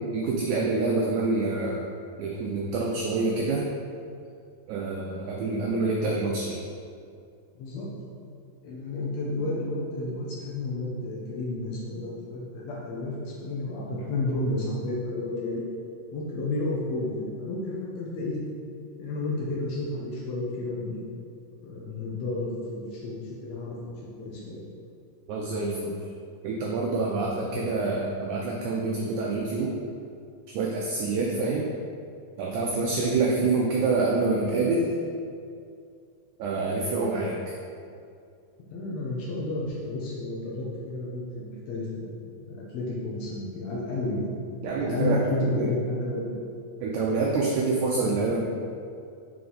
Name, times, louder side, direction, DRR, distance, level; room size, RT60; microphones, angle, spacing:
voice 1, 0.1-1.8 2.2-3.6 4.7-6.7 25.3-26.0 26.4-29.7 30.5-31.7 32.4-34.9 36.4-37.3 44.6-45.2 45.6-45.7 46.8-48.4, right 3 dB, 80° right, -2 dB, 1.8 m, -26 dB
voice 2, 7.6-7.9 8.6-15.6 16.1-18.4 19.0-21.0 21.6-23.8 24.2-24.6 27.4-27.6 33.2-33.3 38.7-44.3 44.8-46.3 48.0-48.1, left 2 dB, 70° left, -5 dB, 1.8 m, -31 dB
5.8 x 4.5 x 3.9 m, 2.4 s
omnidirectional pair, 3.9 m